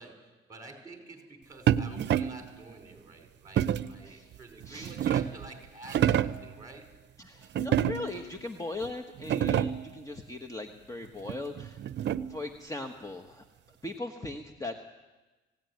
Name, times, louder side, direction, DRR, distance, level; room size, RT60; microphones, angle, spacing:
voice 1, 0.0-6.9, right 2 dB, 20° right, 4 dB, 4.9 m, -49 dB
sound 1, 1.7-2.5 3.6-4.0 4.6-5.5 5.8-6.5 7.5-8.3 8.8-8.9 9.2-9.9 11.3-12.5, right 10 dB, 60° right, 0.6 m, -28 dB
voice 2, 7.2-11.8 12.3-13.4 13.8-14.8, left 2 dB, 15° left, 5 dB, 1.3 m, -39 dB
18.5 x 17.0 x 9.4 m, 1.2 s
cardioid pair, 90°, 20 cm